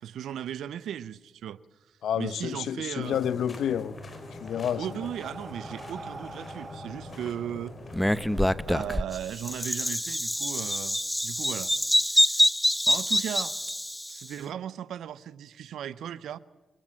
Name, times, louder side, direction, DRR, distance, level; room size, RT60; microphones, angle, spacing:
voice 1, 0.0-1.6 2.1-3.2 4.8-7.8 8.7-11.7 12.1-12.4 12.9-13.5 14.1-16.4, right 10 dB, 80° right, 0.7 m, -36 dB
voice 2, 2.0-3.9 4.4-4.9, left 9 dB, 80° left, 0.8 m, -29 dB
sound 1, 3.0-8.9, left 2 dB, 45° left, 5.2 m, -44 dB
Breathing, 3.9-8.4, right 3 dB, 40° right, 2.8 m, -46 dB
Bird vocalization bird call bird song, 7.9-14.2, equal, 5° left, 0.9 m, -25 dB
26.5 x 23.0 x 7.6 m
cardioid pair, 65°, 0 cm